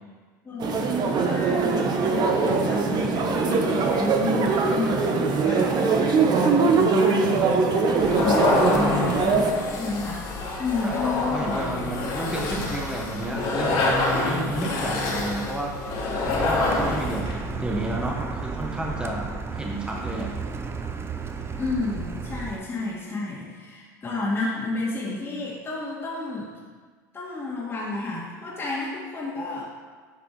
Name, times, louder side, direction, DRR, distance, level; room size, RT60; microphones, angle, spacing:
voice 1, 0.4-10.2 10.6-11.9 12.2-12.4 16.7-16.9 21.5-26.5 27.1-29.6, left 3 dB, 25° left, -6 dB, 2.2 m, -31 dB
sound 1, 0.6-9.5, right 4 dB, 45° right, 1.1 m, -22 dB
sound 2, 8.0-17.3, left 2 dB, 55° left, 2.1 m, -26 dB
voice 2, 10.8-20.3, right 1 dB, 10° right, -1 dB, 1.2 m, -32 dB
Car, 16.3-22.6, right 5 dB, 25° right, 0.7 m, -33 dB
8.3 x 5.1 x 4.7 m, 1.5 s
hypercardioid pair, 85°, 10 cm